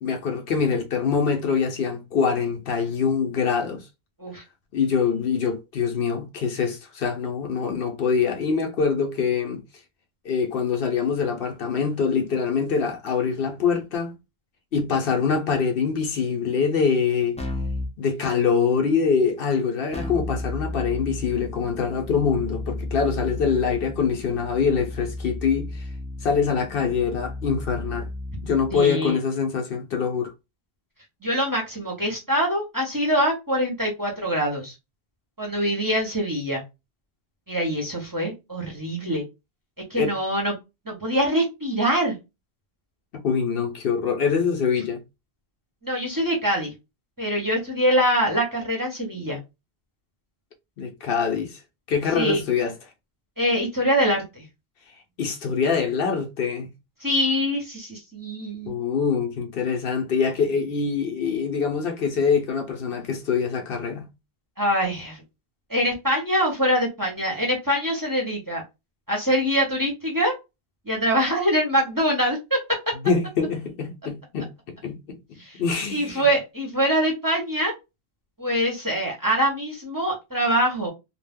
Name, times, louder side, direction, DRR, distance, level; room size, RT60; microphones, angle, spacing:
voice 1, 0.0-3.9 4.7-9.6 10.2-14.1 14.7-17.4 18.0-25.8 26.2-28.1 28.4-30.3 40.0-40.1 43.1-45.0 50.8-51.6 51.9-52.7 55.2-56.7 58.6-64.1 73.0-76.3, left 6 dB, 65° left, 0.8 m, -24 dB
Keyboard (musical), 17.4-17.9 19.9-28.8, left 2 dB, 10° left, 0.5 m, -33 dB
voice 2, 28.7-29.2 31.2-34.7 35.4-36.6 37.5-39.2 39.9-40.5 40.9-42.1 45.8-46.7 47.2-49.4 52.2-52.4 53.4-54.4 57.0-58.8 64.6-65.2 65.7-68.6 69.1-70.3 70.9-72.6 75.4-75.6 75.9-77.7 78.4-80.9, equal, 20° right, 0.8 m, -24 dB
2.3 x 2.1 x 3.4 m
omnidirectional pair, 1.0 m